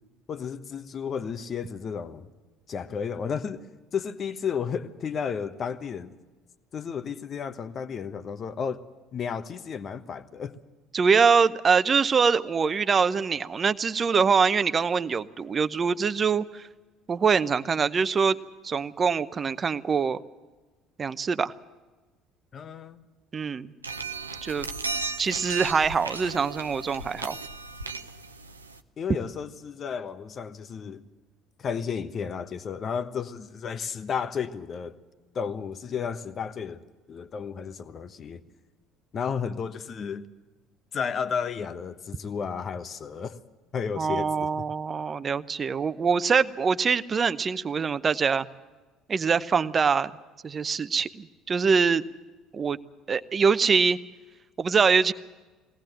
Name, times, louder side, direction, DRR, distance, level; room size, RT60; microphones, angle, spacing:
voice 1, 0.3-2.3 2.7-3.6 3.9-6.1 6.7-8.8 9.1-10.6 22.5-23.0 29.0-31.0 31.6-35.0 35.3-36.8 37.1-38.4 39.1-40.3 40.9-43.4 43.7-44.5, left 6 dB, 40° left, 11 dB, 1.2 m, -32 dB
voice 2, 10.9-16.7 17.1-18.4 18.6-20.2 21.0-21.5 23.3-23.7 24.4-24.7 25.2-27.4 44.0-48.5 49.1-50.1 50.4-52.0 52.5-52.8 53.1-54.0 54.6-55.1, right 5 dB, 35° right, 13 dB, 0.8 m, -24 dB
sound 1, 23.8-28.8, right 4 dB, 90° right, 0.7 m, -36 dB
22.0 x 18.0 x 7.9 m, 1.2 s
figure-of-eight pair, 55°, 0 cm